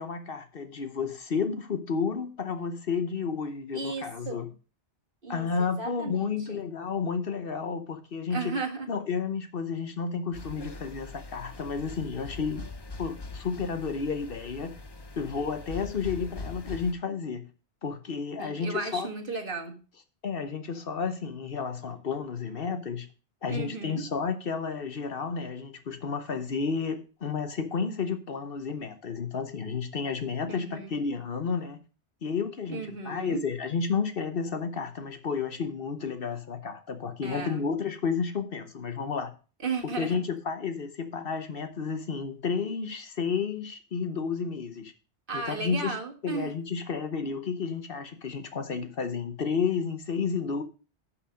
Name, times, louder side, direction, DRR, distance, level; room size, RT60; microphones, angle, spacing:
voice 1, 0.0-4.4 5.3-8.6 8.9-12.6 13.0-14.8 15.2-17.5 17.8-19.1 20.2-23.1 23.4-31.8 32.2-39.3 40.0-44.9 45.3-46.0 46.2-50.6, left 5 dB, 55° left, 1.1 m, -31 dB
voice 2, 3.7-4.5 5.2-6.6 8.3-8.9 18.4-19.8 23.5-24.0 30.5-31.0 32.7-33.4 37.2-37.6 39.6-40.2 45.3-46.5, right 4 dB, 50° right, 1.7 m, -35 dB
sound 1, 10.3-16.9, left 3 dB, 25° left, 0.7 m, -42 dB
11.0 x 5.9 x 5.1 m
omnidirectional pair, 1.2 m